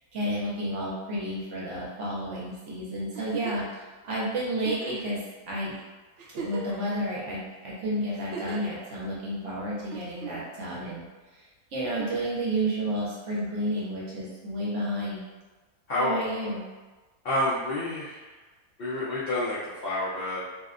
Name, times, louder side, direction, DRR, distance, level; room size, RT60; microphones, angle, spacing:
voice 1, 0.1-5.2 5.5-5.7 6.3-11.0 11.7-15.2 16.0-16.6, right 1 dB, 65° right, -6 dB, 0.8 m, -31 dB
Giggle, 3.1-3.7 4.6-5.1 5.7-5.8 6.2-6.9 8.1-8.7 9.9-10.6 11.8-12.3 13.8-13.9, right 6 dB, 85° right, 0.5 m, -38 dB
voice 2, 15.9-16.2 17.2-18.2 18.8-20.4, left 1 dB, 75° left, -9 dB, 0.5 m, -28 dB
2.6 x 2.1 x 2.4 m, 1.3 s
omnidirectional pair, 1.6 m